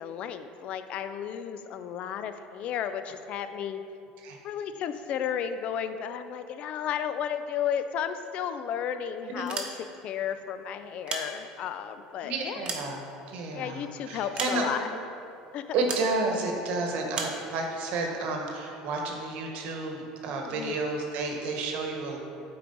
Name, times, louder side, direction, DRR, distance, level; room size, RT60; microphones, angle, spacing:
voice 1, 0.0-3.8 4.4-12.6 13.5-14.9 15.5-15.8 20.5-20.8, left 8 dB, 50° left, 10 dB, 0.4 m, -33 dB
sound 1, 9.3-10.2 10.8-11.8 12.3-13.6 14.4-15.0 15.9-16.2 17.1-17.4, right 4 dB, 35° right, 0.9 m, -36 dB
voice 2, 12.2-13.0 13.3-14.8 15.7-22.2, right 3 dB, 65° right, 2 dB, 1.1 m, -31 dB
8.0 x 4.7 x 3.9 m, 2.7 s
supercardioid pair, 110°, 3 cm